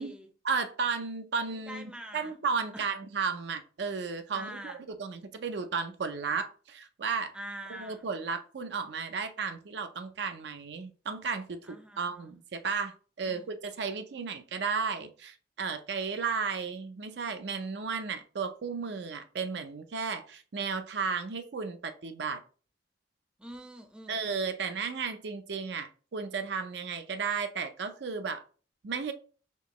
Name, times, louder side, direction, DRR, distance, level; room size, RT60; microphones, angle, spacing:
voice 1, 0.4-4.7 5.0-7.3 7.7-22.4 24.1-28.4 28.8-29.1, right 5 dB, 65° right, 0.5 m, -34 dB
voice 2, 1.7-2.4 2.7-2.9 4.3-4.8 7.3-8.1 11.6-12.3 13.2-13.5 23.4-24.3, right 1 dB, 5° right, 0.5 m, -45 dB
4.3 x 2.9 x 3.0 m
head